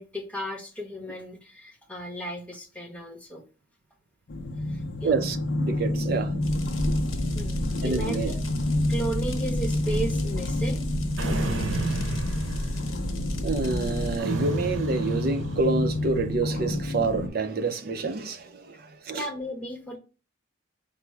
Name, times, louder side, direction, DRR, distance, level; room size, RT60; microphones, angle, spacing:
voice 1, 0.0-3.4 4.6-5.2 7.3-8.4 8.9-10.8 19.1-20.0, right 1 dB, 5° left, 1.0 m, -35 dB
sound 1, 4.3-17.3, left 1 dB, 60° left, 0.5 m, -30 dB
voice 2, 5.0-6.6 6.9-7.0 7.8-8.3 13.4-19.3, right 3 dB, 50° right, 0.5 m, -28 dB
sound 2, 6.4-14.2, equal, 85° left, 1.0 m, -32 dB
sound 3, 11.2-13.0 14.2-16.0, right 2 dB, 80° right, 0.8 m, -31 dB
4.5 x 2.0 x 4.4 m
head